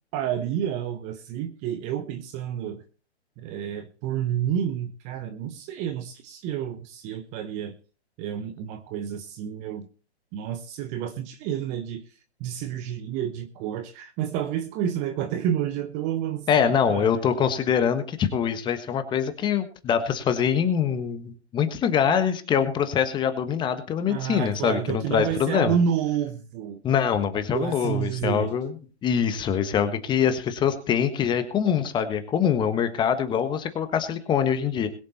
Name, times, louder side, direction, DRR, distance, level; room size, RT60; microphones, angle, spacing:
voice 1, 0.1-2.8 3.4-7.7 8.2-9.9 10.3-12.0 12.4-17.1 24.1-26.8 27.5-28.5, right 9 dB, 20° right, 9 dB, 1.0 m, -29 dB
voice 2, 16.5-25.7 26.8-28.7 29.0-34.9, left 8 dB, 15° left, 10 dB, 1.3 m, -24 dB
21.5 x 7.4 x 4.2 m, 0.35 s
figure-of-eight pair, 135°, 34 cm